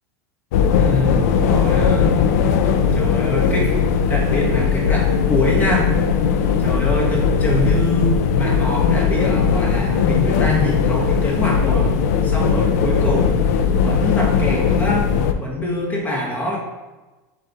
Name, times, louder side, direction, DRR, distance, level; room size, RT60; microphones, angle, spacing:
sound 1, 0.5-15.3, left 6 dB, 85° left, 0.4 m, -18 dB
voice 1, 0.8-2.2 2.9-3.7 4.1-5.9 6.6-11.9 12.2-13.4 13.8-15.1 15.4-16.6, left 2 dB, 20° left, -2 dB, 1.0 m, -24 dB
4.7 x 3.9 x 2.9 m, 1.2 s
supercardioid pair, 160°, 9 cm